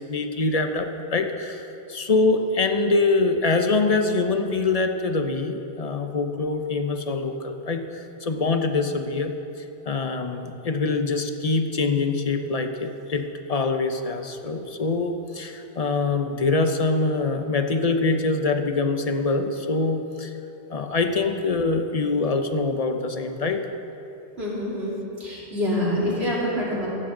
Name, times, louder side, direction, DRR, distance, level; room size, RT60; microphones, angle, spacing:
voice 1, 0.0-9.3 9.9-20.3 20.7-23.6, left 3 dB, 35° left, 6 dB, 0.9 m, -24 dB
voice 2, 24.4-25.0 25.2-26.9, left 1 dB, 70° right, -6 dB, 3.6 m, -26 dB
16.5 x 14.5 x 3.9 m, 3.0 s
omnidirectional pair, 1.1 m